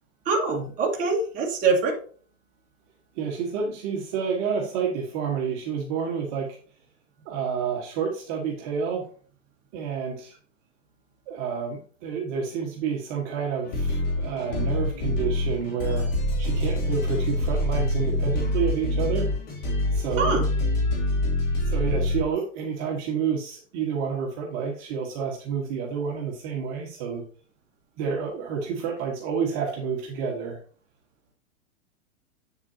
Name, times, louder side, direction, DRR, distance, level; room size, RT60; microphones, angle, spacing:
voice 1, 0.3-2.0 20.2-20.5, right 4 dB, 20° right, -2 dB, 1.7 m, -24 dB
voice 2, 3.2-6.6 7.2-9.1 9.7-10.3 11.3-16.1 16.4-19.3 19.9-20.4 21.7-27.3 28.0-30.6, right 6 dB, 35° right, -1 dB, 1.5 m, -29 dB
sound 1, 13.6-22.2, left 1 dB, 40° left, 3.0 m, -25 dB
8.1 x 7.0 x 2.8 m, 0.42 s
supercardioid pair, 155°, 42 cm